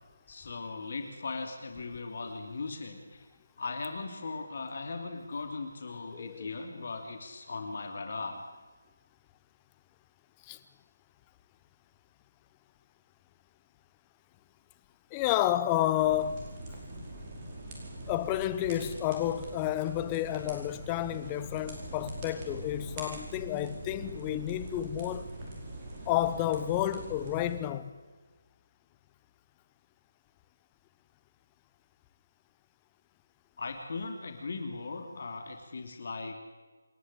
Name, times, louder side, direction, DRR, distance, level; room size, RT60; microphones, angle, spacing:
voice 1, 0.3-3.2 3.6-8.4 33.6-36.3, left 3 dB, 50° left, 3.0 m, -38 dB
voice 2, 6.1-6.5 10.4-10.6 15.1-16.5 18.1-25.3 26.1-27.9, left 13 dB, 15° left, 1.0 m, -30 dB
sound 1, 16.0-27.6, right 1 dB, 25° right, 5.1 m, -43 dB
27.5 x 11.5 x 10.0 m
figure-of-eight pair, 160°, 0 cm